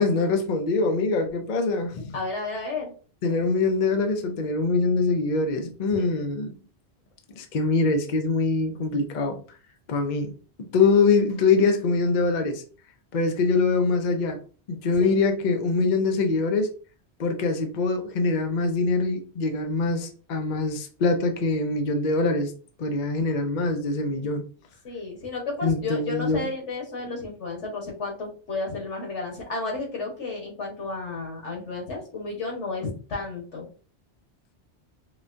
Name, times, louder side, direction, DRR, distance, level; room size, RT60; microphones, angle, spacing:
voice 1, 0.0-2.1 3.2-6.6 7.4-9.4 9.9-10.3 10.7-12.6 13.1-14.4 14.7-16.7 17.2-22.5 22.8-24.4 25.6-26.5, left 3 dB, 50° left, 5 dB, 0.7 m, -23 dB
voice 2, 2.1-2.9 5.9-6.1 14.9-15.2 24.8-33.7, left 3 dB, 90° left, -1 dB, 1.6 m, -32 dB
4.9 x 2.2 x 2.6 m, 0.39 s
omnidirectional pair, 1.2 m